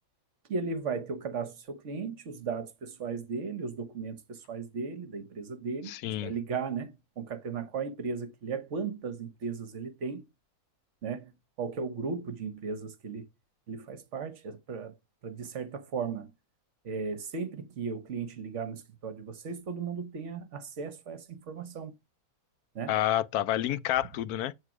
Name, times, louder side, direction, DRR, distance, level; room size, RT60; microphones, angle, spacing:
voice 1, 0.5-5.9 6.2-10.2 11.0-11.3 11.6-13.2 13.7-14.9 15.2-16.3 16.8-21.9 22.7-22.9, right 5 dB, 55° right, 1.1 m, -36 dB
voice 2, 5.9-6.3 22.9-24.5, left 12 dB, 85° left, 1.1 m, -29 dB
8.0 x 3.1 x 6.0 m
omnidirectional pair, 1.6 m